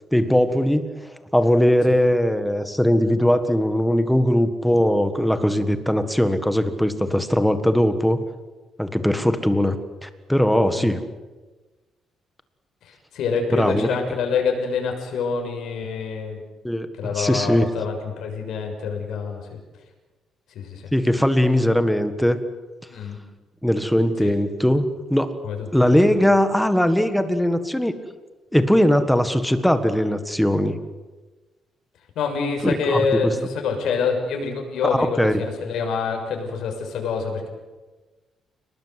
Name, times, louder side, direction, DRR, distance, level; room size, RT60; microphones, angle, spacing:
voice 1, 0.1-0.9 1.3-8.2 8.8-11.0 13.5-13.9 16.6-17.7 20.9-22.4 23.6-24.8 25.1-25.3 25.7-27.9 28.5-30.8 32.6-33.3 34.9-35.4, equal, ahead, 9 dB, 1.6 m, -20 dB
voice 2, 12.9-16.4 17.0-19.4 20.5-20.9 22.9-23.2 24.2-24.3 25.4-25.7 32.1-37.5, left 5 dB, 70° left, 3 dB, 6.7 m, -26 dB
29.0 x 20.0 x 8.2 m, 1.2 s
cardioid pair, 170°, 0 cm